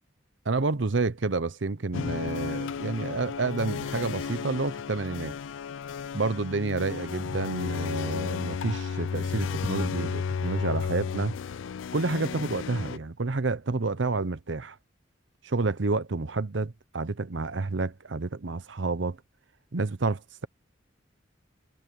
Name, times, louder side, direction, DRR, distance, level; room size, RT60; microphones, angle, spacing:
voice 1, 0.4-5.3 6.1-11.4 11.9-14.8 15.4-19.2 19.7-20.5, right 3 dB, 70° right, 0.8 m, -29 dB
sound 1, 1.9-13.0, left 6 dB, 85° left, 0.4 m, -33 dB
head